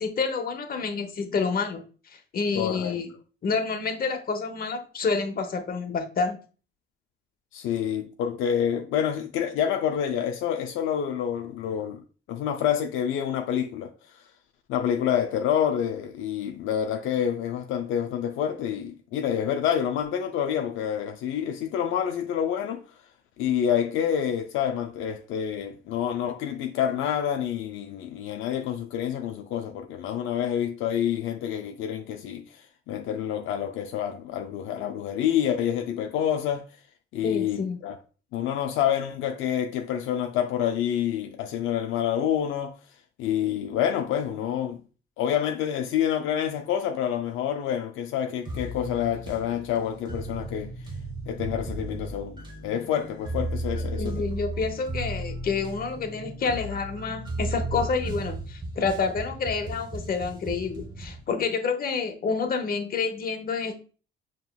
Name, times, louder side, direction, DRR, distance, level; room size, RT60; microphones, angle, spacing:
voice 1, 0.0-3.1 3.4-6.4 37.2-37.8 53.9-63.7, left 4 dB, 50° left, 0.9 m, -28 dB
voice 2, 2.5-3.0 7.5-12.0 12.3-14.2 14.7-22.8 23.4-36.6 37.1-38.0 38.3-42.8 43.2-44.8 45.2-50.7 51.3-54.2, left 9 dB, 85° left, 0.4 m, -28 dB
sound 1, 48.5-61.2, right 1 dB, 20° right, 0.9 m, -35 dB
5.5 x 2.9 x 2.2 m
cardioid pair, 90°, 20 cm